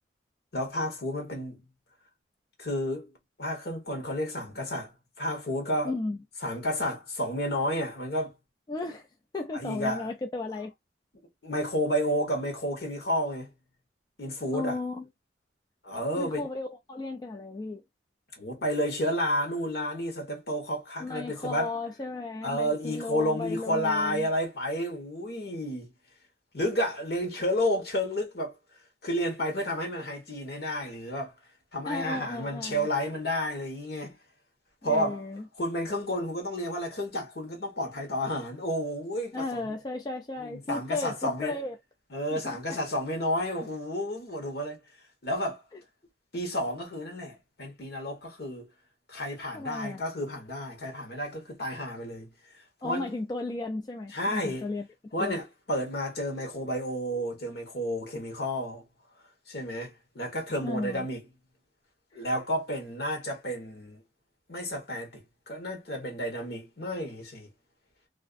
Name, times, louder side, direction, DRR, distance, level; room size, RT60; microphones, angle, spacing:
voice 1, 0.5-1.6 2.6-3.1 3.4-4.9 5.2-5.9 6.4-8.3 9.5-10.1 11.4-13.5 14.2-14.8 15.8-16.5 18.4-21.7 22.4-25.9 26.5-28.5 29.0-31.3 31.7-34.2 34.8-35.2 35.6-39.7 40.4-41.6 42.1-44.8 45.2-45.6 46.3-48.7 49.1-52.3 52.8-53.1 54.1-54.7 55.1-58.8 59.5-61.2 62.1-64.0 64.5-67.5, equal, 60° left, 1.1 m, -31 dB
voice 2, 5.8-6.2 8.7-9.1 9.3-10.7 14.5-15.1 16.2-17.8 21.0-24.3 31.9-32.9 34.8-35.4 39.3-41.8 42.3-42.8 45.7-45.8 49.5-50.0 52.8-54.9 55.2-55.4 60.6-61.1, left 2 dB, 20° left, 0.3 m, -34 dB
2.5 x 2.1 x 2.4 m
head